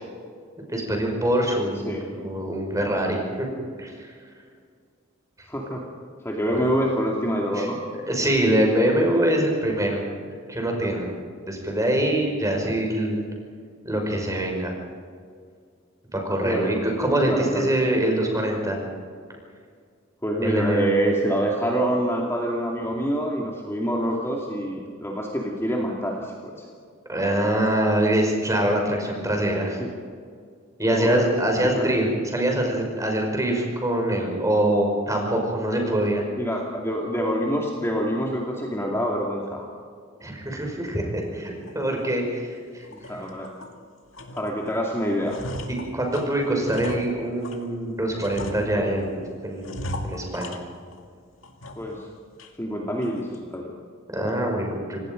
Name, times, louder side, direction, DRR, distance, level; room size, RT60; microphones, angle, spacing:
voice 1, 0.7-3.5 3.8-3.9 7.5-7.7 8.0-10.0 10.5-11.2 11.5-13.2 13.8-14.7 16.1-18.8 20.4-20.9 27.1-29.8 30.8-36.2 40.2-42.5 42.7-42.9 45.7-49.1 49.4-49.7 50.0-50.6 54.1-55.0, right 1 dB, 15° right, 1 dB, 5.4 m, -24 dB
voice 2, 5.5-5.9 6.2-7.8 12.0-12.1 16.4-16.7 17.3-17.7 20.2-26.6 29.8-29.9 30.9-31.3 31.7-31.9 36.4-39.7 43.1-43.5 44.4-45.4 51.8-52.1 52.6-53.7, equal, 15° left, -1 dB, 2.4 m, -26 dB
sound 1, 41.7-41.8 42.3-42.4 42.8-43.8 44.1-44.8 45.0-47.7 48.2-49.1 49.6-51.1 51.4-52.0 52.4-52.5 53.0-53.4, left 1 dB, 90° left, 2.2 m, -37 dB
26.0 x 19.0 x 5.3 m, 2.1 s
head